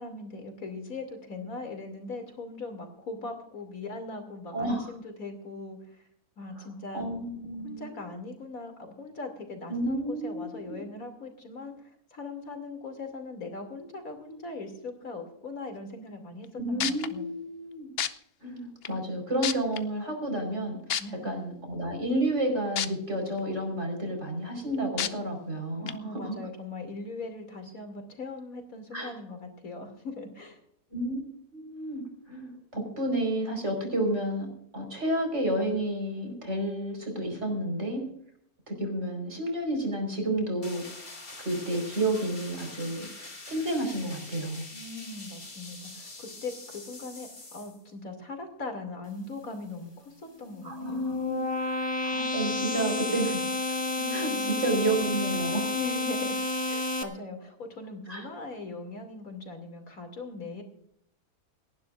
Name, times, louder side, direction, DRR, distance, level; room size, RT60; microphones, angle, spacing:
voice 1, 0.0-6.0 6.4-7.0 7.6-11.7 12.1-17.3 21.0-21.4 25.8-30.6 44.7-51.1 54.0-54.5 55.7-56.4 56.7-60.6, left 3 dB, 70° left, 4 dB, 3.2 m, -40 dB
voice 2, 4.5-4.9 6.6-6.7 6.9-7.9 9.7-10.8 16.5-17.9 18.4-26.4 28.9-29.1 30.9-31.2 31.5-34.5 34.7-38.0 38.7-40.8 41.4-44.7 50.6-51.4 52.0-53.4 54.1-55.7 58.1-58.3, right 1 dB, 50° right, 3 dB, 5.2 m, -31 dB
sound 1, 16.4-16.5 16.8-17.1 18.0-18.1 18.8-18.9 19.4-19.8 20.9-21.0 22.8-22.9 23.4-23.5 25.0-25.1 25.9-26.0, left 9 dB, 55° left, 0.8 m, -28 dB
sound 2, 40.6-47.8, left 2 dB, 30° left, 2.4 m, -45 dB
sound 3, 50.5-57.0, left 2 dB, 15° left, 1.6 m, -30 dB
28.5 x 11.5 x 2.5 m, 0.68 s
omnidirectional pair, 1.5 m